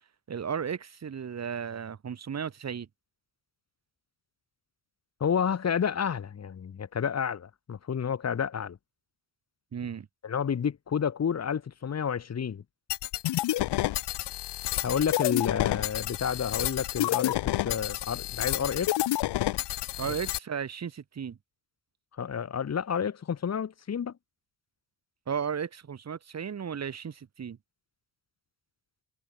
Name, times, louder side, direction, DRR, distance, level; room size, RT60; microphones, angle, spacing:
voice 1, 0.3-2.9 9.7-10.1 20.0-21.4 25.3-27.6, right 7 dB, 40° right, 2.3 m, -34 dB
voice 2, 5.2-8.8 10.2-12.6 14.8-17.4 17.6-18.9 20.1-20.2 22.2-24.1, left 7 dB, 40° left, 1.9 m, -30 dB
sound 1, 12.9-20.4, left 15 dB, 75° left, 1.3 m, -29 dB
cardioid pair, 125°, 41 cm